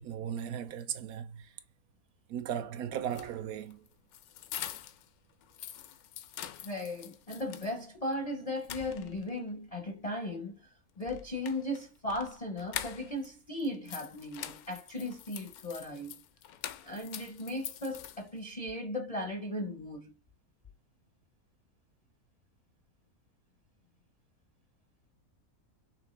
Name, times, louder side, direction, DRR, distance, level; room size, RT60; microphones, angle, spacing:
voice 1, 0.0-1.5 2.3-3.9, right 9 dB, 80° right, 1.1 m, -37 dB
sound 1, 3.0-5.1 5.4-7.7 8.1-8.2 8.6-9.4 11.0-13.3 13.6-18.5, left 11 dB, 80° left, 1.1 m, -44 dB
voice 2, 6.6-10.7 11.0-16.2 16.8-20.1, left 1 dB, 40° left, 0.5 m, -37 dB
6.0 x 2.7 x 3.1 m
omnidirectional pair, 1.6 m